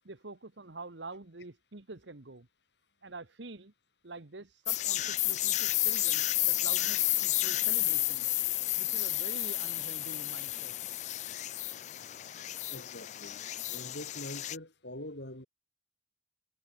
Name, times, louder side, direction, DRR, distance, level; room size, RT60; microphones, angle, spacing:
voice 1, 0.0-2.5 3.0-3.7 4.0-8.3 8.8-10.7, right 3 dB, 80° right, 1.5 m, -46 dB
sound 1, 4.7-14.6, left 16 dB, 40° left, 0.3 m, -31 dB
voice 2, 12.7-13.4 13.7-15.5, left 1 dB, 65° left, 5.4 m, -44 dB
head